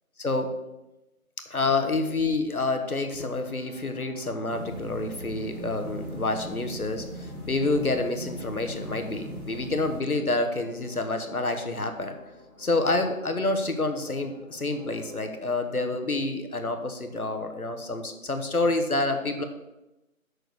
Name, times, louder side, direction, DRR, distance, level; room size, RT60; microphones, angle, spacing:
voice 1, 0.2-0.5 1.5-12.2 12.6-19.4, left 2 dB, 80° left, 6 dB, 1.2 m, -28 dB
sound 1, 2.8-15.3, left 1 dB, 25° right, 1.8 m, -52 dB
sound 2, 4.5-10.0, right 1 dB, 80° right, 3.1 m, -39 dB
6.3 x 4.9 x 6.5 m, 0.96 s
figure-of-eight pair, 165°, 43 cm